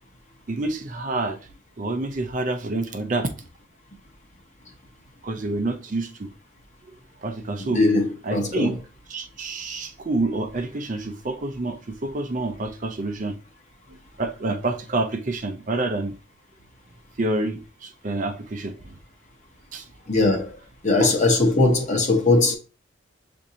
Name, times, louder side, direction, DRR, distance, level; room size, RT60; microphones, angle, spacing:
voice 1, 0.5-1.4 1.8-3.3 5.2-6.3 7.2-7.8 8.2-8.8 9.1-13.4 13.9-16.1 17.2-18.9 19.7-19.8 21.0-21.1, right 2 dB, 40° right, 0.5 m, -28 dB
voice 2, 7.7-8.7 20.1-20.6 20.8-22.5, left 2 dB, 35° left, 0.9 m, -20 dB
7.0 x 2.6 x 2.8 m
head